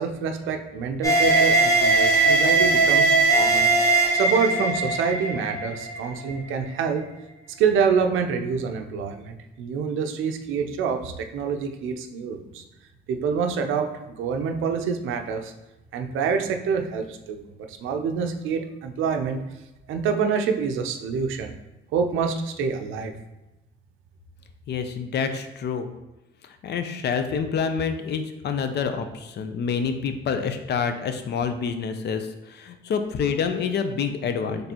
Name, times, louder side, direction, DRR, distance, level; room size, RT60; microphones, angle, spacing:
voice 1, 0.0-3.7 4.1-7.1 7.6-12.6 13.1-15.5 15.9-17.4 17.7-19.4 19.9-21.5 21.9-23.1, right 6 dB, 85° right, 6 dB, 0.5 m, -26 dB
sound 1, 1.0-6.4, right 3 dB, 15° left, 1.0 m, -20 dB
voice 2, 24.7-25.9 26.6-34.7, left 6 dB, 60° left, 8 dB, 0.5 m, -27 dB
4.2 x 3.2 x 2.9 m, 0.98 s
cardioid pair, 90°, 20 cm